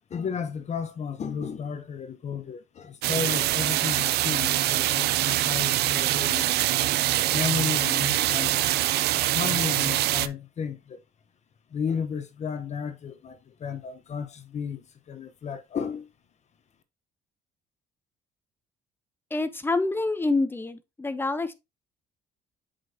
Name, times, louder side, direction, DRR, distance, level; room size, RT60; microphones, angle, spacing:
voice 1, 0.1-6.9 7.3-8.7 9.1-11.0 11.7-16.1, left 6 dB, 40° left, 0.9 m, -33 dB
sound 1, 3.0-10.3, right 15 dB, 75° right, 0.5 m, -24 dB
voice 2, 19.3-21.5, left 3 dB, 15° left, 0.9 m, -27 dB
7.6 x 5.2 x 2.8 m
cardioid pair, 110°, 17 cm